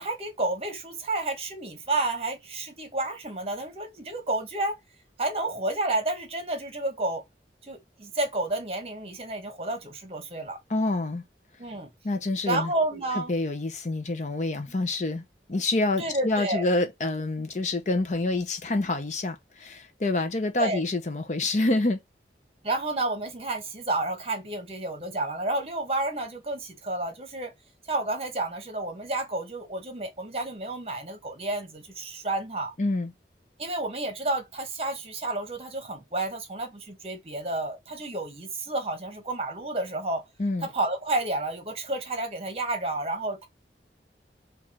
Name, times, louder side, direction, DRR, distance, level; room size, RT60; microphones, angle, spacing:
voice 1, 0.0-4.8 5.2-7.2 7.7-10.6 11.6-11.9 12.4-13.3 16.0-16.6 20.6-20.8 22.6-27.5 27.9-32.7 33.6-40.2 40.6-43.5, right 2 dB, 35° right, 1.2 m, -30 dB
voice 2, 10.7-11.2 12.0-12.7 13.2-15.2 15.5-22.0 32.8-33.1 40.4-40.7, left 2 dB, 45° left, 0.6 m, -27 dB
4.6 x 2.5 x 4.2 m
head